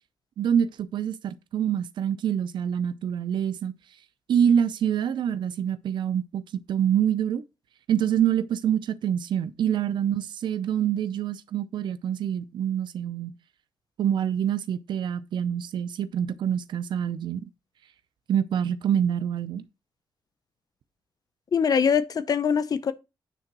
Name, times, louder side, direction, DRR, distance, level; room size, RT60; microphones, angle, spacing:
voice 1, 0.4-3.7 4.3-6.4 6.7-7.4 7.9-13.3 14.0-17.4 18.3-19.6, right 9 dB, 85° right, 0.6 m, -26 dB
voice 2, 21.5-22.9, left 6 dB, 55° left, 0.7 m, -23 dB
9.2 x 3.9 x 5.9 m
cardioid pair, 105°, 8 cm